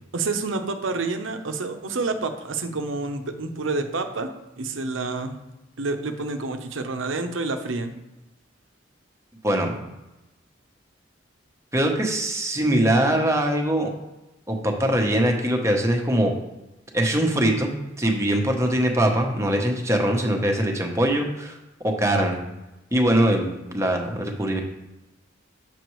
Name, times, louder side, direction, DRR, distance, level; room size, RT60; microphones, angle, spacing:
voice 1, 0.1-4.3 4.6-5.4 5.8-7.9, right 3 dB, 85° right, 7 dB, 0.8 m, -28 dB
voice 2, 9.4-9.7 11.7-13.9 14.5-16.3 16.9-21.6 21.8-22.4 22.9-24.6, right 1 dB, 15° right, 2 dB, 0.9 m, -22 dB
7.0 x 6.8 x 3.1 m, 0.99 s
head